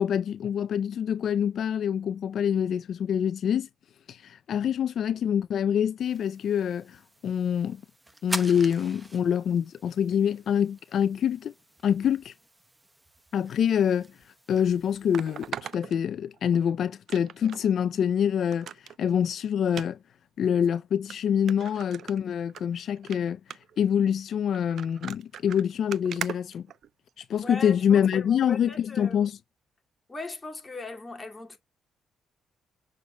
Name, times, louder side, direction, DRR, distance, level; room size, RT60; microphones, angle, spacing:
voice 1, 0.0-3.7 4.1-7.8 8.2-11.5 11.8-12.3 13.3-20.0 20.4-26.7 27.2-29.4, left 8 dB, 65° left, 0.4 m, -26 dB
sound 1, 6.0-15.5, right 1 dB, 10° right, 0.9 m, -44 dB
sound 2, 14.1-14.2 15.1-16.6 17.1-17.7 18.0-18.1 18.5-19.0 19.7-19.9 20.6-20.7 21.1-21.2 21.5-22.6 23.0-23.2 23.5-23.8 24.5-27.2 28.0-28.2 28.7-28.8, right 9 dB, 65° right, 0.5 m, -39 dB
voice 2, 27.4-29.2 30.1-31.6, left 3 dB, 20° left, 2.3 m, -39 dB
7.2 x 6.3 x 2.2 m
cardioid pair, 90°, 0 cm